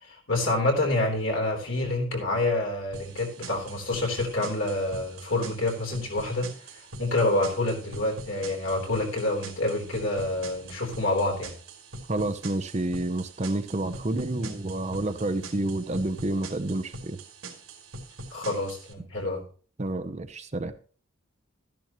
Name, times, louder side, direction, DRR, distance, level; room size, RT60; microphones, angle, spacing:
voice 1, 0.0-6.5 7.0-11.5 18.3-19.4, left 2 dB, 70° left, 3.7 m, -27 dB
sound 1, 2.9-18.9, right 3 dB, 85° right, 2.9 m, -43 dB
voice 2, 12.1-17.2 19.8-20.7, right 2 dB, 35° right, 0.7 m, -29 dB
13.5 x 10.5 x 3.0 m
head